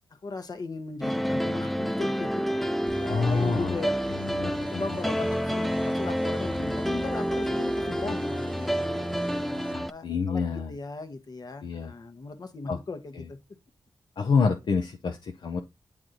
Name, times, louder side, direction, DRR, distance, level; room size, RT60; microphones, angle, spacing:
voice 1, 0.1-2.4 3.0-3.9 4.4-9.1 9.9-13.4, left 3 dB, 55° left, 1.1 m, -38 dB
sound 1, 1.0-9.9, equal, ahead, 0.4 m, -29 dB
sound 2, 2.9-9.7, right 5 dB, 85° right, 0.8 m, -45 dB
voice 2, 3.1-3.7 4.2-4.8 9.7-10.7 11.6-11.9 12.7-12.8 14.2-15.6, left 5 dB, 75° left, 0.7 m, -27 dB
8.9 x 3.1 x 3.9 m
wide cardioid pair, 100°, 8 cm